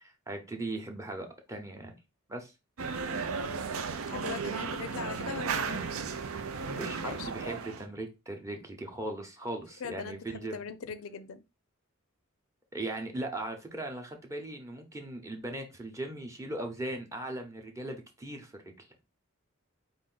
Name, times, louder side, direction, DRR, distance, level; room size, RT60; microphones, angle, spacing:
voice 1, 0.3-1.9 2.3-2.5 6.8-10.6 12.7-18.5, right 1 dB, 15° right, 0.9 m, -38 dB
sound 1, 2.8-7.9, right 5 dB, 80° right, 0.6 m, -35 dB
voice 2, 3.4-3.7 4.1-6.0 6.7-7.3 9.8-11.4, left 6 dB, 80° left, 0.5 m, -41 dB
4.8 x 2.6 x 3.9 m
head